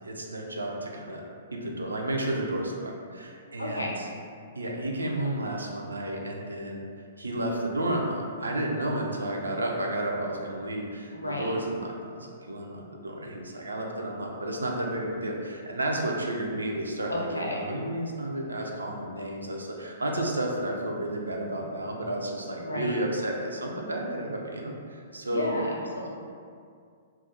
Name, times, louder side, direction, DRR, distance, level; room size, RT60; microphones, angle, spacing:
voice 1, 0.0-1.2 1.5-4.1 4.6-6.8 7.2-25.6, right 1 dB, 80° right, 0 dB, 0.3 m, -32 dB
voice 2, 3.6-3.9 11.1-11.5 17.1-17.6 22.6-23.0 25.3-26.1, left 1 dB, 85° left, -2 dB, 0.4 m, -32 dB
2.2 x 2.0 x 2.8 m, 2.3 s
figure-of-eight pair, 115°, 0 cm